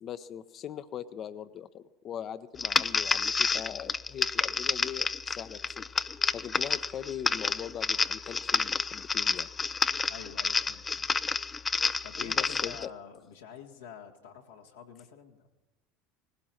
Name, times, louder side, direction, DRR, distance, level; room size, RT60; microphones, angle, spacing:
voice 1, 0.0-5.9 6.3-9.5 12.2-12.9, left 9 dB, 45° left, 14 dB, 0.8 m, -41 dB
sound 1, 2.6-12.9, left 4 dB, 25° left, 0.5 m, -29 dB
voice 2, 10.1-11.1 12.0-15.5, left 7 dB, 80° left, 0 dB, 1.8 m, -47 dB
19.0 x 16.0 x 4.5 m, 1.0 s
hypercardioid pair, 75°, 0 cm